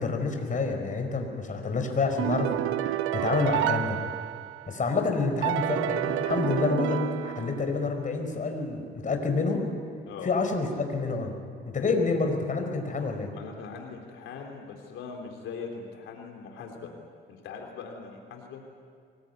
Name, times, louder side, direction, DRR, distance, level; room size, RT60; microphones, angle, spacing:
voice 1, 0.0-2.5 3.1-4.0 4.7-9.6 10.2-11.3 11.7-13.3, left 4 dB, 40° left, 4 dB, 4.9 m, -28 dB
sound 1, 2.2-4.8 5.4-7.9, right 13 dB, 90° right, 0.7 m, -29 dB
voice 2, 13.3-16.9 17.3-18.6, left 5 dB, 90° left, 2 dB, 3.5 m, -41 dB
24.0 x 21.0 x 9.3 m, 2.1 s
cardioid pair, 90°, 20 cm